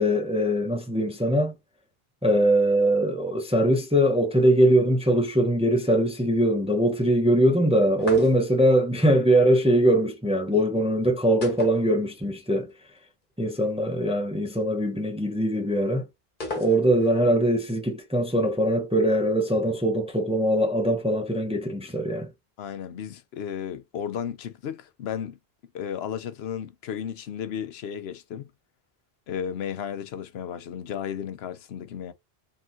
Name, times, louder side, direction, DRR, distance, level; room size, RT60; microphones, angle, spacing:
voice 1, 0.0-1.5 2.2-12.7 13.4-16.1 16.6-22.3, right 1 dB, 5° right, 0.7 m, -22 dB
sound 1, 8.0-8.7 11.4-12.5 12.7-12.8 16.4-17.2, left 3 dB, 55° left, 1.3 m, -36 dB
voice 2, 22.6-25.4 25.7-28.5 29.3-32.1, left 8 dB, 80° left, 0.9 m, -34 dB
4.4 x 3.6 x 2.6 m
omnidirectional pair, 1.0 m